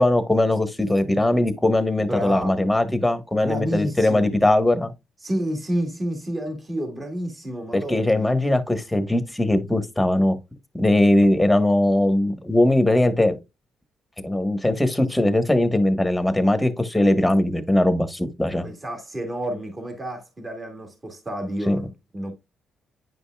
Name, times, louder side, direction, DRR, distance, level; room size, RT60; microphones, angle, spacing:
voice 1, 0.0-4.9 7.7-10.3 10.8-13.4 14.2-18.7 21.7-21.8, left 1 dB, 5° left, 1.2 m, -20 dB
voice 2, 2.0-2.6 2.9-3.0 3.4-4.3 5.2-8.1 18.6-22.3, equal, 25° right, 2.2 m, -30 dB
9.4 x 5.3 x 2.3 m
cardioid pair, 90°, 0 cm